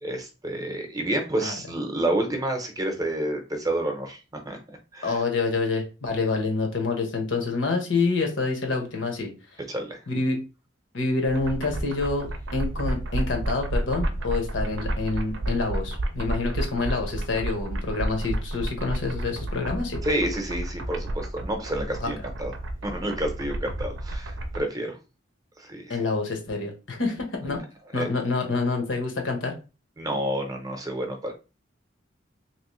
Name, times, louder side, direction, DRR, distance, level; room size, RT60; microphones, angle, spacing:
voice 1, 0.0-5.2 9.7-10.0 20.0-22.5 22.8-25.0 25.6-26.0 27.9-28.1 30.0-31.3, right 1 dB, 20° right, 3 dB, 0.7 m, -29 dB
voice 2, 5.0-9.3 10.1-10.4 10.9-20.0 22.0-22.1 25.9-27.6 27.9-29.5, left 3 dB, 75° left, 3 dB, 1.1 m, -27 dB
sound 1, 11.3-24.6, right 1 dB, 70° right, 0.5 m, -31 dB
3.1 x 3.0 x 3.1 m, 0.30 s
head